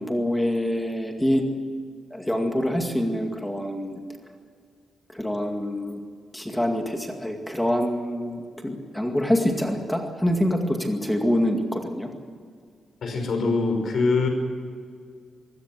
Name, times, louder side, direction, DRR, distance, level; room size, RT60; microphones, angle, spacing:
voice 1, 0.0-1.5 2.1-4.0 5.1-6.0 6.3-12.1, equal, 5° left, 3 dB, 2.1 m, -25 dB
voice 2, 13.0-14.3, left 3 dB, 55° left, 5 dB, 5.3 m, -23 dB
25.5 x 16.5 x 7.6 m, 2.1 s
wide cardioid pair, 170°, 0 cm